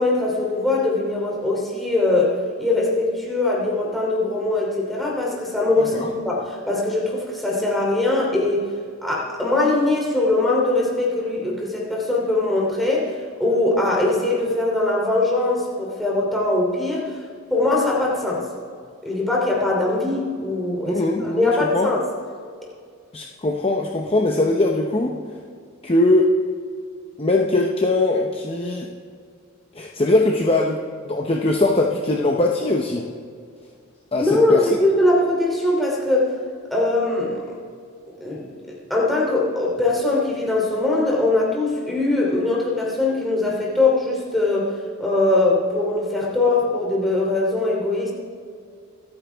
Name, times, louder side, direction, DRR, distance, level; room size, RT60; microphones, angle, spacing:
voice 1, 0.0-8.7 9.0-13.1 13.4-17.1 17.5-18.4 19.0-21.0 21.4-22.0 34.2-36.3 36.7-37.4 38.2-44.7 45.0-48.1, left 2 dB, ahead, -4 dB, 3.0 m, -21 dB
voice 2, 5.8-6.1 20.8-21.9 23.1-25.2 25.8-26.3 27.2-28.9 29.7-30.8 31.0-33.1 34.1-34.7, left 2 dB, 25° left, 1 dB, 0.7 m, -21 dB
25.0 x 9.3 x 3.5 m, 2.2 s
head